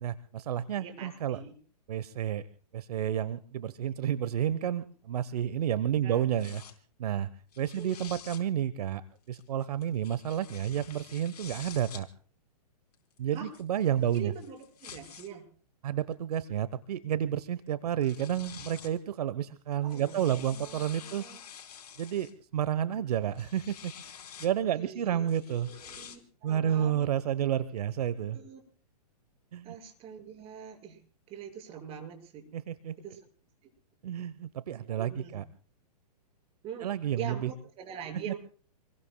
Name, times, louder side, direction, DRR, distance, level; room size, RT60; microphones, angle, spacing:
voice 1, 0.0-1.4 1.9-2.4 2.7-6.6 7.0-7.3 7.6-9.0 9.3-12.1 13.2-14.3 15.8-21.3 22.0-24.1 24.4-25.7 26.4-28.4 29.5-29.8 32.5-32.9 34.0-35.4 36.8-37.5 38.3-38.4, right 10 dB, 65° right, 16 dB, 1.0 m, -30 dB
voice 2, 0.7-1.5 6.0-6.3 7.8-8.0 13.3-13.5 14.0-15.5 19.8-21.4 24.7-27.1 28.3-28.6 29.6-31.0 31.3-32.4 33.0-33.2 34.9-35.4 36.6-36.9 37.2-38.4, right 8 dB, 30° right, 3 dB, 5.8 m, -44 dB
sound 1, 6.4-6.7 7.5-8.4 9.3-12.0 12.9-15.3 16.1-16.2 17.7-17.8 18.0-19.0 19.7-22.3 23.1-24.5 25.3-26.2, left 8 dB, 65° left, 4.4 m, -48 dB
28.0 x 22.0 x 2.3 m, 0.43 s
hypercardioid pair, 135°, 21 cm